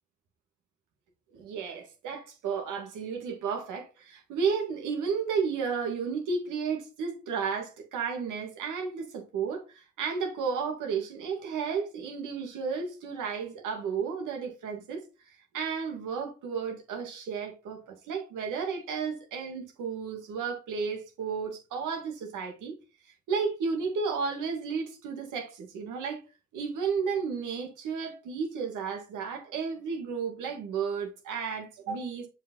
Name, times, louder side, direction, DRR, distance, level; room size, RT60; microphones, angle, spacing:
voice 1, 1.3-15.0 15.5-22.7 23.3-26.2 26.5-32.3, right 5 dB, 85° right, 2.2 m, -33 dB
7.3 x 5.4 x 3.9 m
cardioid pair, 90°, 30 cm